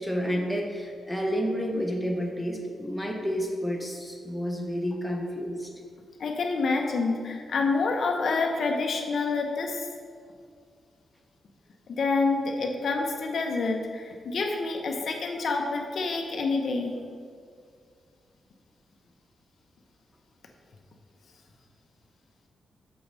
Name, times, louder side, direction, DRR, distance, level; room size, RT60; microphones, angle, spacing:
voice 1, 0.0-5.7, equal, ahead, 0 dB, 0.8 m, -30 dB
voice 2, 6.2-9.9 11.9-16.9, left 3 dB, 60° left, 2 dB, 0.7 m, -27 dB
6.2 x 4.7 x 5.3 m, 2.1 s
cardioid pair, 115°, 0 cm